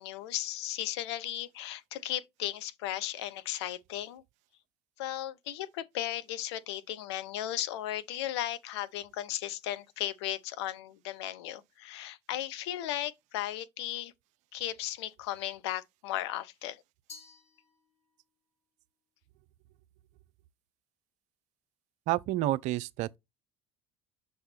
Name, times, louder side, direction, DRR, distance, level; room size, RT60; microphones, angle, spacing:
voice 1, 0.0-4.2 5.0-14.1 14.5-16.8, left 13 dB, 70° left, 0.6 m, -36 dB
Glass, 17.1-18.3, left 4 dB, 50° left, 3.7 m, -52 dB
voice 2, 22.1-23.2, right 15 dB, 55° right, 0.4 m, -29 dB
6.6 x 3.4 x 4.3 m
hypercardioid pair, 65°, 14 cm